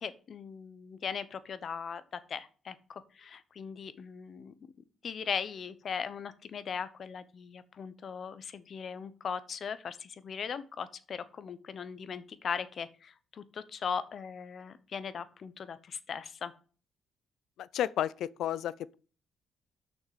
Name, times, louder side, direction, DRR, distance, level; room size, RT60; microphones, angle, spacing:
voice 1, 0.0-4.5 5.0-16.5, left 6 dB, 55° left, 0.9 m, -39 dB
voice 2, 17.6-18.9, left 11 dB, 80° left, 0.4 m, -32 dB
6.4 x 6.1 x 6.6 m
cardioid pair, 90°, 0 cm